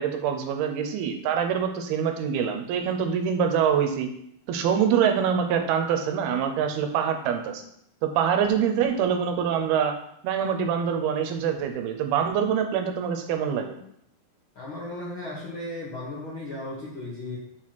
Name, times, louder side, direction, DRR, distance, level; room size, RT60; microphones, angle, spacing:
voice 1, 0.0-4.1 4.5-7.6 8.0-10.0 10.2-13.8, right 7 dB, 85° right, 6 dB, 2.7 m, -25 dB
voice 2, 14.5-17.4, left 2 dB, 60° left, -6 dB, 1.3 m, -35 dB
5.9 x 4.8 x 5.8 m, 0.74 s
omnidirectional pair, 4.4 m